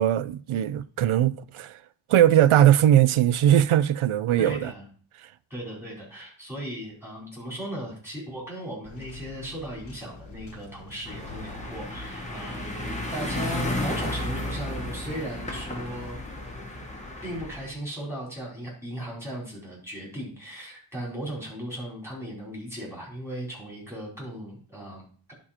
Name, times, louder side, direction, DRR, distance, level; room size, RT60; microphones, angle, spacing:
voice 1, 0.0-1.7 2.1-4.7, right 11 dB, 90° right, 0.5 m, -20 dB
voice 2, 4.4-4.8 5.5-16.2 17.2-25.3, right 1 dB, 5° right, 4.5 m, -37 dB
sound 1, 8.8-15.0, left 4 dB, 75° left, 1.5 m, -47 dB
sound 2, 11.1-17.7, left 1 dB, 15° left, 1.8 m, -33 dB
11.0 x 4.4 x 4.3 m
wide cardioid pair, 105°, 48 cm